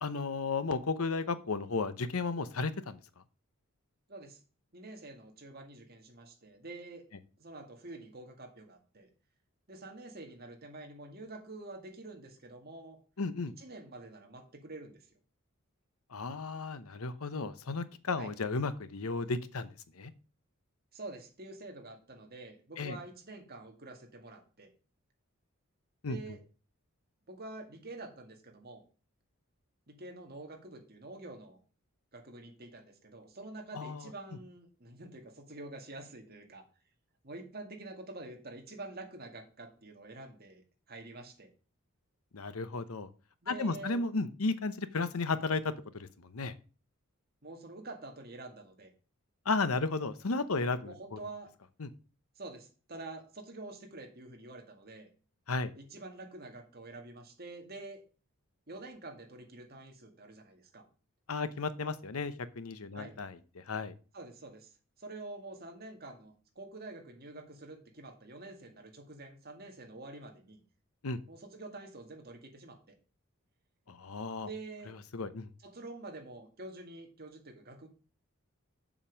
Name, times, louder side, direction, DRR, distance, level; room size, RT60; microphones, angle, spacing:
voice 1, 0.0-3.0 13.2-13.5 16.1-19.7 20.0-20.1 22.8-23.0 26.0-26.2 33.7-34.1 42.3-43.1 43.5-46.5 49.5-51.2 51.8-51.9 55.5-55.7 61.3-63.9 71.0-71.2 73.9-74.5 75.1-75.5, left 3 dB, 90° left, 13 dB, 0.9 m, -34 dB
voice 2, 4.1-4.4 4.7-7.0 7.4-9.1 9.7-13.0 13.6-15.0 18.2-18.3 20.9-24.7 26.1-26.4 27.3-28.8 29.9-31.6 32.1-36.6 37.2-41.5 43.4-44.0 47.4-48.9 50.8-51.5 52.4-55.1 55.7-58.0 58.7-60.9 62.9-63.2 64.1-64.7 65.0-70.6 71.3-72.9 74.4-75.0 75.6-77.9, right 2 dB, 45° right, 3 dB, 2.0 m, -47 dB
7.2 x 5.3 x 7.3 m, 0.36 s
head